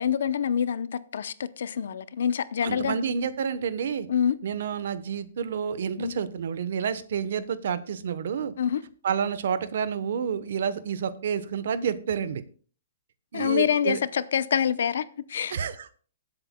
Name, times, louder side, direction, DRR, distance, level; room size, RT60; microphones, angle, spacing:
voice 1, 0.0-3.0 4.1-4.4 6.0-6.1 8.6-8.8 13.3-15.6, left 8 dB, 75° left, 0.6 m, -26 dB
voice 2, 2.6-4.1 4.4-8.5 9.0-12.4 13.3-14.0 15.5-15.9, right 7 dB, 70° right, 0.9 m, -29 dB
22.5 x 7.9 x 2.2 m
hypercardioid pair, 150°, 0 cm